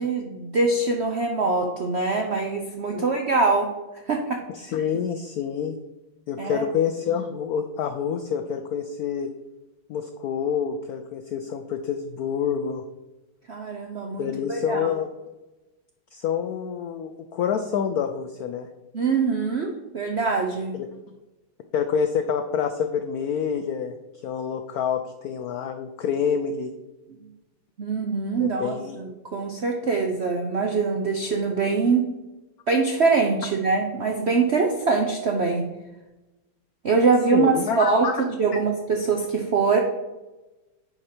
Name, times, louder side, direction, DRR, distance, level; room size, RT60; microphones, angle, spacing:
voice 1, 0.0-3.7 4.1-4.4 6.4-6.6 13.5-14.9 18.9-20.8 27.8-32.1 32.7-35.6 36.8-38.1 38.4-39.8, right 4 dB, 70° right, 2 dB, 0.6 m, -23 dB
voice 2, 4.5-5.7 6.3-9.3 9.9-12.8 14.2-15.1 16.1-18.7 20.7-20.9 21.7-23.9 24.2-26.7 28.4-29.0 37.3-38.2, left 7 dB, 85° left, 7 dB, 0.8 m, -27 dB
9.8 x 4.9 x 4.3 m, 1.1 s
omnidirectional pair, 2.2 m